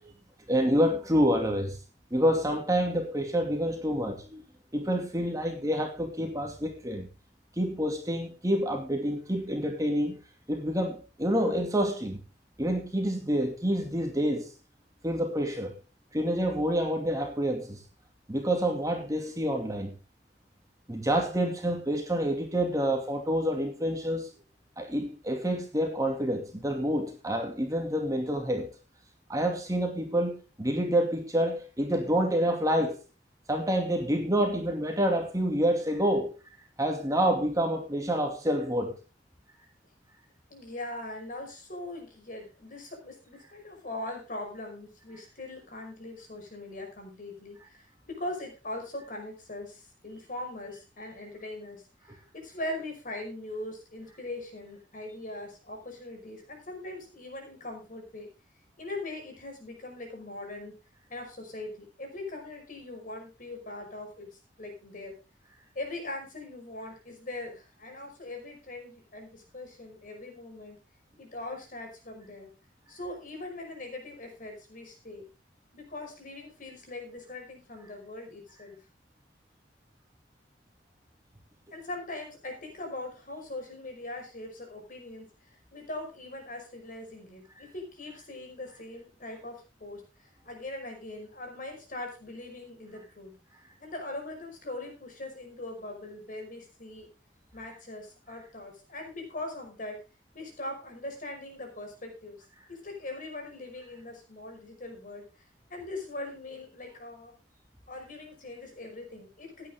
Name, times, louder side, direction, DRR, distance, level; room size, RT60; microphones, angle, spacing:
voice 1, 0.5-1.8 2.1-4.4 4.7-7.1 7.6-10.2 10.5-12.2 12.6-14.5 15.0-15.7 16.1-17.8 18.3-19.9 20.9-24.3 24.8-28.7 29.3-33.0 33.5-36.3 36.8-38.9, equal, 20° right, 2.5 m, -28 dB
voice 2, 40.5-51.8 52.3-58.3 58.8-60.8 61.1-65.1 65.8-70.8 71.2-72.5 72.9-75.3 75.7-78.8 81.7-93.3 93.8-97.1 97.5-100.0 100.3-102.4 102.7-105.3 105.7-107.3 107.9-109.7, left 2 dB, 50° left, 5.2 m, -41 dB
16.0 x 9.9 x 3.7 m
head